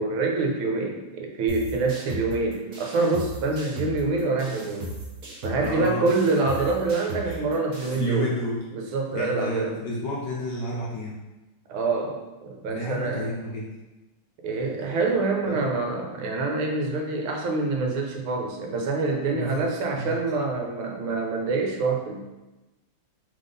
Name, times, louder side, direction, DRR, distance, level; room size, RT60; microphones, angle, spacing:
voice 1, 0.0-4.9 5.4-8.3 8.7-9.7 11.7-13.3 14.4-22.2, right 3 dB, 75° right, 2 dB, 1.4 m, -26 dB
sound 1, 1.5-8.1, right 1 dB, 50° right, 1.2 m, -37 dB
voice 2, 5.6-6.1 6.6-6.7 7.2-7.4 8.0-8.6 9.1-11.2 12.7-13.7 15.4-15.7 19.3-19.6 19.9-20.2, equal, 70° left, -4 dB, 1.1 m, -30 dB
3.6 x 3.6 x 3.8 m, 1.1 s
omnidirectional pair, 2.4 m